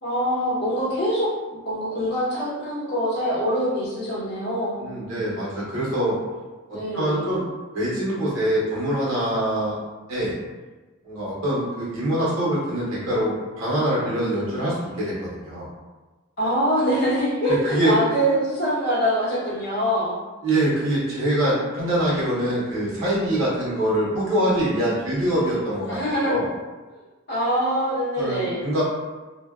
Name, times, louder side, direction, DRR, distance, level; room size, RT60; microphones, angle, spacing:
voice 1, 0.0-4.8 6.7-7.3 16.4-20.1 25.9-26.4 26.9-27.0 27.3-28.7, equal, 50° left, -7 dB, 0.9 m, -24 dB
voice 2, 4.8-6.2 6.9-7.4 7.7-9.8 10.1-10.3 11.0-15.7 17.5-18.0 20.4-26.0 26.3-26.5 28.2-28.8, right 1 dB, 80° right, -7 dB, 1.0 m, -24 dB
2.6 x 2.2 x 2.3 m, 1.2 s
head